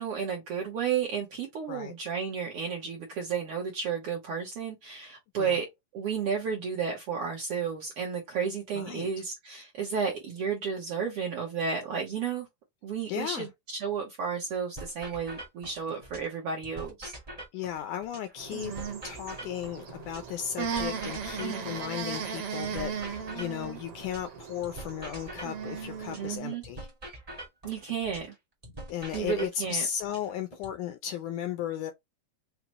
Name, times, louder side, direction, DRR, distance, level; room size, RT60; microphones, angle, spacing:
voice 1, 0.0-5.7 5.9-12.5 12.8-17.1 21.4-21.7 26.2-26.6 27.6-28.3 29.1-29.8, right 6 dB, 85° right, 1.2 m, -32 dB
voice 2, 8.7-9.1 13.1-13.5 17.5-18.7 19.0-26.9 28.9-31.9, left 9 dB, 80° left, 1.8 m, -35 dB
sound 1, 14.8-16.3 16.6-20.3 20.6-24.3 24.6-28.3 28.6-30.8, right 1 dB, 35° right, 0.5 m, -44 dB
sound 2, 18.4-26.4, right 6 dB, 65° right, 1.4 m, -37 dB
5.7 x 2.0 x 2.9 m
omnidirectional pair, 3.9 m